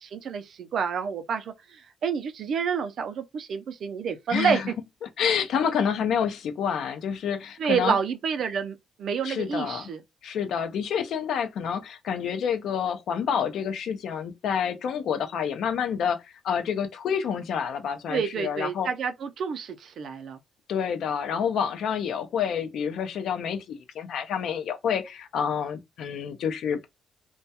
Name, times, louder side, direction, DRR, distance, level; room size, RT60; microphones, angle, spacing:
voice 1, 0.0-4.6 7.6-10.0 18.1-20.4, right 6 dB, 65° right, 0.4 m, -29 dB
voice 2, 4.3-4.7 5.2-8.0 9.2-9.9 10.2-18.9 20.7-26.8, left 7 dB, 75° left, 0.4 m, -28 dB
2.2 x 2.2 x 2.7 m
cardioid pair, 90°, 0 cm